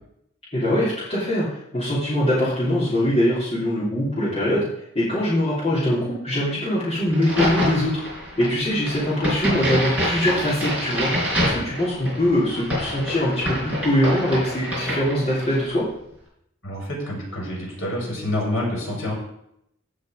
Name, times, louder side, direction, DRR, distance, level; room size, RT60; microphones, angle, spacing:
voice 1, 0.5-1.5 1.7-4.7 4.9-8.0 8.4-11.1 11.4-15.8, equal, 30° left, -12 dB, 3.3 m, -22 dB
Crack, 7.1-15.7, equal, 5° right, 4.6 m, -26 dB
voice 2, 16.6-19.1, left 1 dB, 80° left, -2 dB, 5.0 m, -27 dB
15.5 x 5.2 x 5.1 m, 0.77 s
head